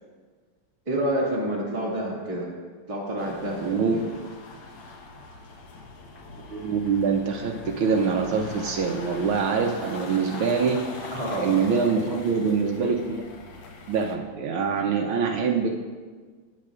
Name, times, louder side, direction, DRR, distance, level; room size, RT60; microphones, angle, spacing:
voice 1, 0.8-2.5 2.9-4.0 10.1-10.3 11.1-11.5, right 1 dB, 15° right, -5 dB, 1.7 m, -28 dB
sound 1, 3.2-14.2, left 3 dB, 65° left, 1.9 m, -42 dB
voice 2, 3.6-4.0 6.5-10.8 11.4-13.2 13.9-15.7, right 5 dB, 75° right, 2 dB, 1.5 m, -24 dB
19.5 x 9.1 x 2.4 m, 1.5 s
omnidirectional pair, 2.4 m